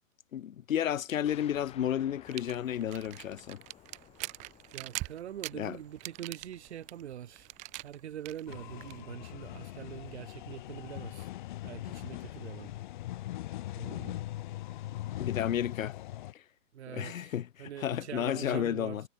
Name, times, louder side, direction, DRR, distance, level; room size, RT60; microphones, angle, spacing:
voice 1, 0.3-3.6 5.5-5.8 15.2-15.9 16.3-16.4 16.9-19.0, left 10 dB, 85° left, 1.1 m, -32 dB
sound 1, 1.3-10.5, left 12 dB, 15° left, 3.8 m, -57 dB
sound 2, 2.3-9.0, right 22 dB, 20° right, 1.5 m, -43 dB
voice 2, 4.7-7.5 7.8-11.3 11.6-12.7 13.8-14.2 16.7-17.3 17.6-19.0, right 10 dB, 55° right, 2.7 m, -43 dB
sound 3, 8.5-16.3, left 15 dB, 35° left, 1.7 m, -40 dB
hypercardioid pair, 165°, 39 cm